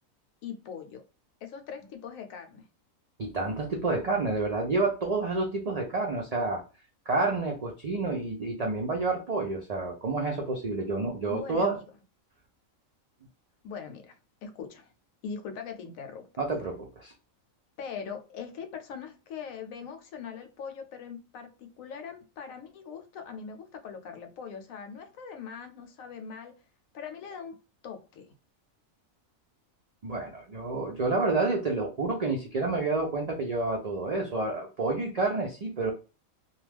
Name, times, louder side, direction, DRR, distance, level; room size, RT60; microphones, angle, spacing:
voice 1, 0.4-1.0 1.4-2.6 11.3-11.7 13.6-14.9 15.2-16.3 17.8-26.5 26.9-27.6 27.8-28.3, left 6 dB, 80° left, 1.0 m, -41 dB
voice 2, 3.2-6.6 7.1-11.7 16.4-17.1 30.0-35.9, right 3 dB, 85° right, 0.3 m, -29 dB
2.3 x 2.2 x 3.3 m
omnidirectional pair, 1.4 m